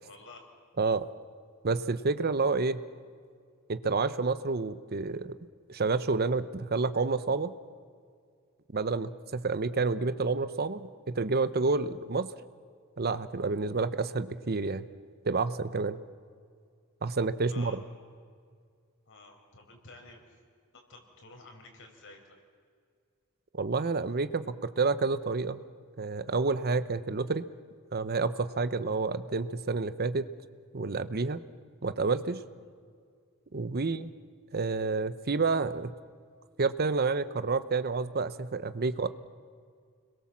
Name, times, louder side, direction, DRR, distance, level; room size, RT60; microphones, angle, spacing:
voice 1, 0.0-0.5 17.5-17.8 19.1-20.2 20.9-22.4 32.6-32.7 33.7-34.0 38.7-38.8, left 3 dB, 60° left, 2 dB, 5.1 m, -51 dB
voice 2, 0.8-1.1 1.6-2.8 3.7-5.4 5.7-7.5 8.7-12.3 13.0-14.9 15.2-16.0 17.0-17.8 23.5-25.6 26.0-27.5 27.9-30.3 30.7-31.4 31.8-32.4 33.5-34.1 34.5-35.9 36.6-39.1, right 4 dB, 45° right, 13 dB, 0.8 m, -29 dB
30.0 x 22.0 x 7.4 m, 2.1 s
head